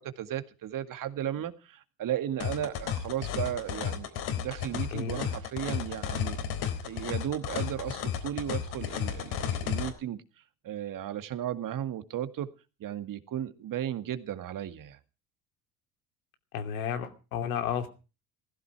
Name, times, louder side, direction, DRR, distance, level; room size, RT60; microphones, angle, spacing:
voice 1, 0.0-6.4 6.8-10.2 10.6-12.5 12.8-15.0, right 11 dB, 50° right, 10 dB, 2.1 m, -35 dB
sound 1, 2.4-9.9, left 8 dB, 65° left, 4.1 m, -33 dB
voice 2, 4.9-5.3 16.5-17.9, left 8 dB, 85° left, 6 dB, 2.9 m, -32 dB
17.0 x 15.0 x 4.7 m, 0.34 s
hypercardioid pair, 70°, 41 cm